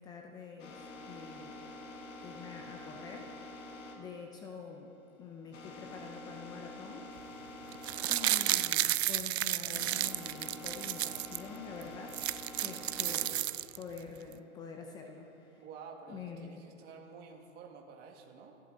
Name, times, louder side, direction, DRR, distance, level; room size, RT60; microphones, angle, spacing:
voice 1, 0.0-1.6 2.2-3.3 4.0-4.9 5.2-7.1 7.4-7.5 8.1-12.2 12.6-13.5 13.7-15.6 16.1-16.6, left 5 dB, 10° left, 2 dB, 0.5 m, -46 dB
sound 1, 0.6-8.8 9.0-13.3 13.8-15.6, left 2 dB, 70° left, 2.8 m, -48 dB
sound 2, 7.7-11.4 11.8-11.9 12.1-14.0 14.3-14.4, right 14 dB, 55° right, 0.5 m, -32 dB
voice 2, 15.6-18.6, right 5 dB, 25° right, 1 dB, 1.9 m, -50 dB
26.0 x 12.0 x 3.9 m, 2.7 s
hypercardioid pair, 150°, 38 cm